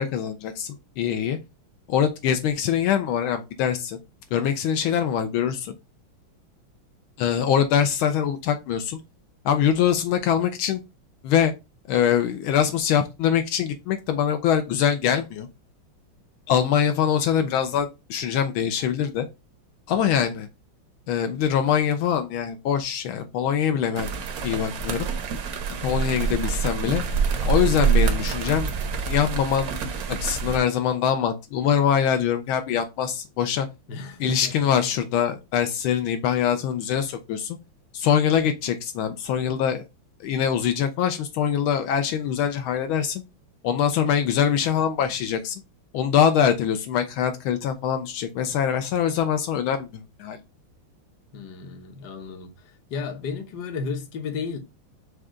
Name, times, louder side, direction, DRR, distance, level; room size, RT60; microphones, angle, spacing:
voice 1, 0.0-1.4 1.9-4.0 4.3-5.7 7.2-9.0 9.4-10.8 11.2-11.5 11.9-15.5 16.5-19.3 19.9-20.5 21.1-24.1 24.4-25.1 25.8-27.0 27.4-28.7 29.0-29.7 30.1-33.7 34.2-37.6 37.9-39.8 40.2-43.2 43.6-45.6 45.9-49.9 50.2-50.4, left 8 dB, 80° left, 1.4 m, -23 dB
sound 1, 24.0-30.6, right 6 dB, 65° right, 0.9 m, -26 dB
voice 2, 33.9-34.7 51.3-52.5 52.9-54.6, left 4 dB, 60° left, 1.3 m, -33 dB
6.3 x 2.3 x 3.6 m
omnidirectional pair, 2.3 m